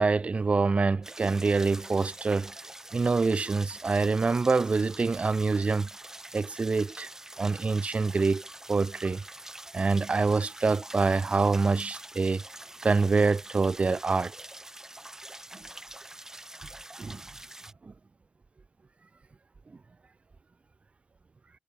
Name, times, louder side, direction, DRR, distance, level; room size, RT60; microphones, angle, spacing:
voice 1, 0.0-2.5 2.9-5.9 6.3-7.1 7.4-9.2 9.7-12.4 12.8-14.3 17.0-17.2 17.8-17.9, right 4 dB, 35° right, 0.5 m, -26 dB
sound 1, 1.0-17.7, right 1 dB, 15° right, 1.2 m, -45 dB
cardioid pair, 85°, 4 cm